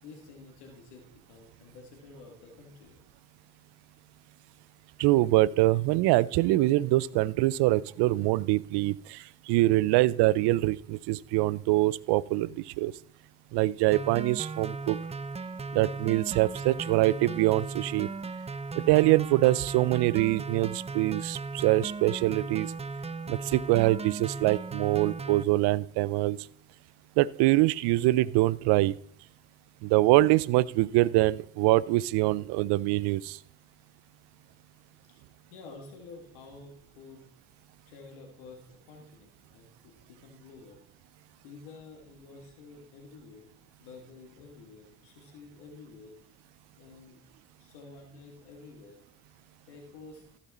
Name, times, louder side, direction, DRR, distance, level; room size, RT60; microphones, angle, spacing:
voice 1, 0.0-3.0 23.2-23.6 35.1-35.2 35.5-37.3 37.9-40.8 41.4-43.5 43.8-46.2 46.8-47.2 47.6-49.0 49.7-50.2, left 4 dB, 90° left, 2 dB, 1.9 m, -50 dB
voice 2, 5.0-12.9 13.5-15.0 15.7-18.1 18.8-22.7 23.3-26.4 27.2-28.9 29.8-33.4, right 18 dB, 80° right, 21 dB, 0.5 m, -24 dB
sound 1, 13.9-25.4, right 3 dB, 15° right, 0.5 m, -37 dB
15.0 x 5.4 x 4.2 m, 0.63 s
supercardioid pair, 55°, 39 cm